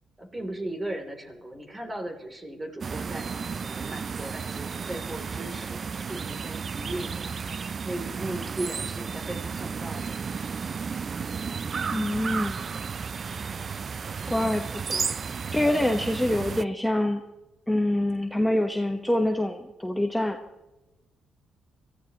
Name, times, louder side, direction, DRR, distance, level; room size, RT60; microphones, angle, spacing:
voice 1, 0.2-10.1, right 1 dB, 25° right, 4 dB, 3.1 m, -37 dB
sound 1, 2.8-16.7, right 5 dB, 45° right, 0.4 m, -33 dB
voice 2, 11.9-12.7 13.4-13.6 14.3-15.2 15.5-17.2 17.7-20.4, left 1 dB, 5° left, 4 dB, 1.2 m, -26 dB
23.5 x 14.0 x 3.0 m, 1.0 s
supercardioid pair, 65°, 0 cm